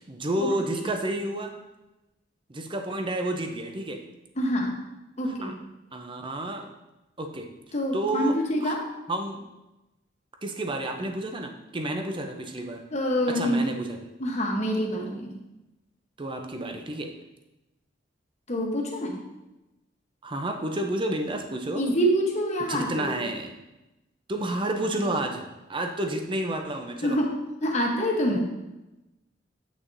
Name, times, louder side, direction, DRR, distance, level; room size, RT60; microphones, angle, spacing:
voice 1, 0.0-1.5 2.5-4.0 5.2-5.5 5.9-6.7 7.2-7.5 7.9-8.8 9.1-9.4 10.4-12.8 13.3-14.0 16.2-17.1 20.2-22.0 22.7-23.5 24.3-25.4 25.7-27.2, right 1 dB, 25° right, 4 dB, 0.6 m, -30 dB
voice 2, 4.4-4.7 5.2-5.5 7.7-8.8 12.9-13.7 14.2-15.3 18.5-19.2 21.7-23.1 27.0-27.3 27.6-28.5, equal, 40° left, 0 dB, 1.1 m, -26 dB
8.0 x 6.2 x 2.7 m, 1.0 s
head